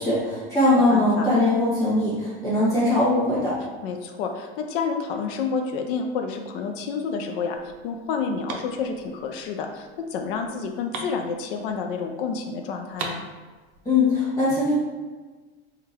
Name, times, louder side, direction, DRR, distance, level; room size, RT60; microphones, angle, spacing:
voice 1, 0.0-3.6 13.8-14.7, left 2 dB, 10° left, -10 dB, 1.4 m, -21 dB
voice 2, 0.8-1.3 3.8-7.6 7.8-13.2, left 5 dB, 65° left, 4 dB, 0.5 m, -29 dB
sound 1, 7.5-12.1 12.3-12.4 12.7-13.9, right 3 dB, 50° right, 0.6 m, -39 dB
3.7 x 2.3 x 4.3 m, 1.4 s
supercardioid pair, 175°, 30 cm